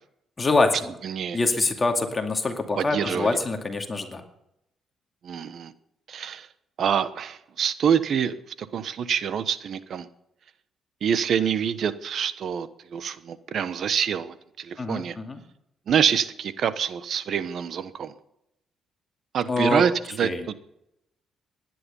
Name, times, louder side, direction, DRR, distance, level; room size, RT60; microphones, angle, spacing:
voice 1, 0.4-0.9 1.3-4.2 14.8-15.4 19.5-19.8 20.2-20.5, left 3 dB, 25° left, 4 dB, 2.3 m, -25 dB
voice 2, 1.0-1.4 2.8-3.4 5.2-5.7 6.1-6.5 6.8-10.1 11.0-15.2 15.9-18.1 19.3-20.5, right 8 dB, 60° right, 14 dB, 1.1 m, -26 dB
17.0 x 11.0 x 5.5 m, 0.81 s
cardioid pair, 90°, 0 cm